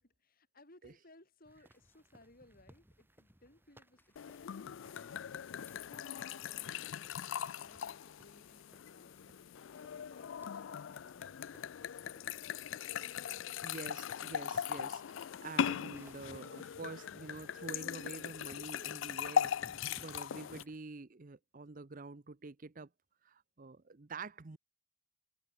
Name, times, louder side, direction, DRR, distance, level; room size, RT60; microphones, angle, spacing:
voice 1, 0.0-4.2 4.4-5.9 6.2-7.2 7.6-11.4 12.0-12.5 13.1-13.7, left 2 dB, 45° left, 5.1 m, -63 dB
sound 1, 1.5-20.8, right 1 dB, 10° right, 1.7 m, -65 dB
sound 2, 1.6-2.0 2.8-3.0 3.2-3.3 3.6-14.7 15.9-20.8, left 2 dB, 10° left, 5.6 m, -74 dB
sound 3, 4.2-20.6, left 8 dB, 65° left, 0.4 m, -39 dB
voice 2, 13.6-19.7 20.0-22.9 23.2-24.6, right 3 dB, 40° right, 0.7 m, -47 dB
head